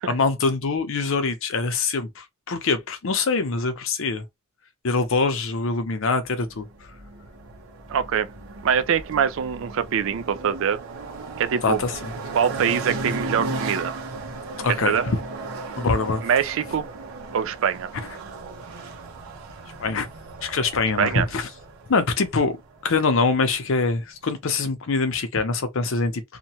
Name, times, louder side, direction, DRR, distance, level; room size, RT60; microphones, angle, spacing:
voice 1, 0.1-4.2 4.8-6.7 11.6-12.1 14.6-15.2 15.8-16.2 17.9-18.1 19.8-20.1 20.4-21.5 21.9-22.6 22.8-26.2, left 4 dB, 65° left, 0.7 m, -24 dB
sound 1, 6.2-23.6, right 3 dB, 80° right, 0.8 m, -36 dB
voice 2, 7.9-8.3 8.6-10.8 11.4-11.8 12.3-13.9 14.8-15.0 16.2-16.9 17.3-17.9 21.0-21.3, right 7 dB, 65° right, 0.4 m, -23 dB
2.9 x 2.2 x 2.8 m
head